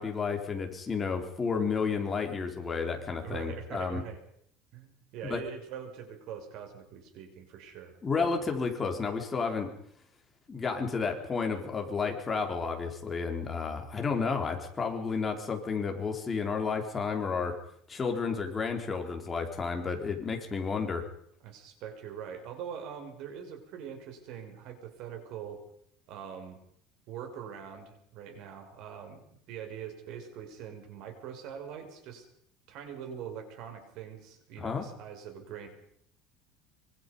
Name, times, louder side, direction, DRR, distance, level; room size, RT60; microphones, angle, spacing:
voice 1, 0.0-4.0 5.2-5.4 8.0-9.7 10.5-17.6 17.9-21.0 34.6-34.8, left 5 dB, 20° left, 3 dB, 3.7 m, -31 dB
voice 2, 3.2-4.2 4.7-8.0 21.4-25.6 26.1-26.6 27.1-32.3 32.7-35.7, right 8 dB, 60° right, 5 dB, 6.1 m, -43 dB
25.0 x 25.0 x 5.4 m, 0.68 s
cardioid pair, 155°, 0 cm